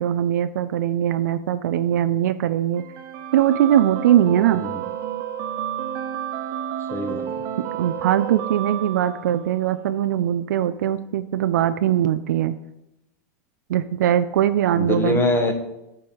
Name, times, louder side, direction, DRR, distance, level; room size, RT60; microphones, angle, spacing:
voice 1, 0.0-2.8 3.3-4.6 7.8-12.6 13.7-15.3, right 11 dB, 80° right, 11 dB, 0.4 m, -21 dB
sound 1, 2.8-9.7, right 9 dB, 55° right, 1.0 m, -31 dB
voice 2, 6.9-7.2 14.8-15.5, left 2 dB, 25° left, 5 dB, 1.2 m, -23 dB
7.7 x 4.5 x 7.1 m, 0.90 s
hypercardioid pair, 115°, 9 cm